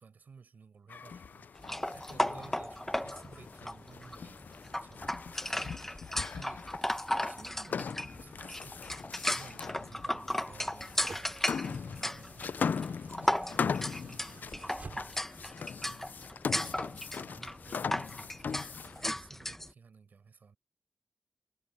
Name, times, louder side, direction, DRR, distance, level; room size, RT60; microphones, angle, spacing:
voice 1, 0.0-6.9 7.2-12.4 13.2-16.1 16.6-20.6, right 5 dB, 85° right, 4.9 m, -56 dB
sound 1, 0.9-19.1, left 6 dB, 80° left, 0.4 m, -40 dB
sound 2, 1.6-19.7, left 1 dB, 10° left, 1.4 m, -36 dB
sound 3, 10.4-15.4 16.6-16.7, right 4 dB, 60° right, 4.7 m, -53 dB
cardioid pair, 65°, 3 cm